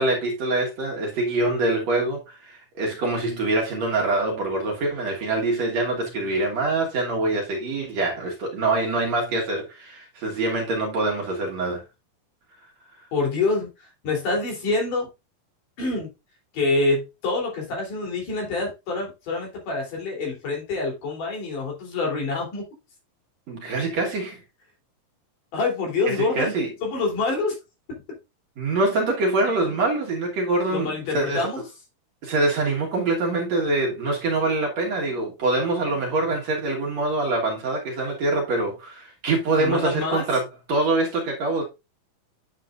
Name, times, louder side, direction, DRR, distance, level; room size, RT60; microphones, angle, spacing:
voice 1, 0.0-11.8 23.5-24.4 26.1-26.7 28.6-31.5 32.2-40.4 40.7-41.6, right 2 dB, 55° right, 2.4 m, -24 dB
voice 2, 13.1-13.7 14.0-15.1 15.8-16.1 16.5-22.6 25.5-26.5 26.8-27.6 27.9-28.0 30.7-31.6 39.6-40.2, left 3 dB, 65° left, 4.7 m, -26 dB
9.3 x 7.5 x 2.5 m
omnidirectional pair, 4.1 m